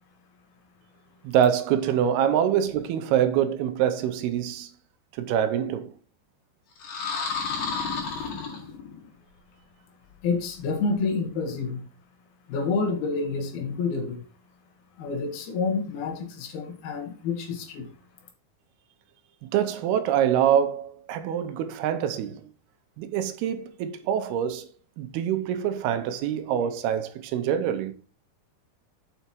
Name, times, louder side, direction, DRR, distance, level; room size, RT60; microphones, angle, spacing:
voice 1, 1.2-4.7 5.2-5.9 19.4-22.4 23.0-24.7 25.0-27.9, right 9 dB, 90° right, 2.7 m, -25 dB
sound 1, 6.8-9.1, left 5 dB, 60° left, 3.3 m, -31 dB
voice 2, 10.2-11.8 12.5-14.2 15.0-17.9, left 4 dB, 75° left, 3.3 m, -28 dB
6.8 x 5.6 x 4.5 m
omnidirectional pair, 4.5 m